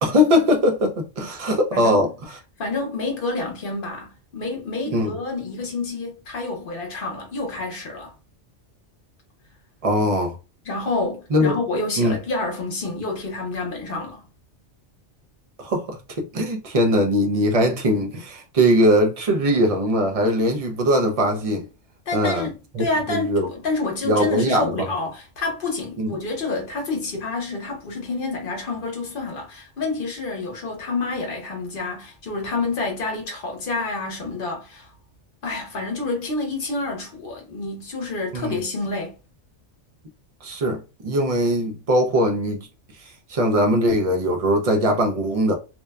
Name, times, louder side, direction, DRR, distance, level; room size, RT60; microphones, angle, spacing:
voice 1, 0.0-2.4 4.9-5.2 9.8-10.4 11.3-11.6 12.0-12.1 15.6-21.7 22.1-22.5 22.7-23.5 24.0-24.9 26.0-26.1 38.3-38.6 40.4-42.7 43.0-45.5, equal, 60° right, 0.4 m, -21 dB
voice 2, 1.7-2.1 2.6-8.1 10.6-14.2 22.1-34.9 35.4-39.2, left 3 dB, 50° left, 1.0 m, -28 dB
2.7 x 2.1 x 2.2 m
omnidirectional pair, 1.2 m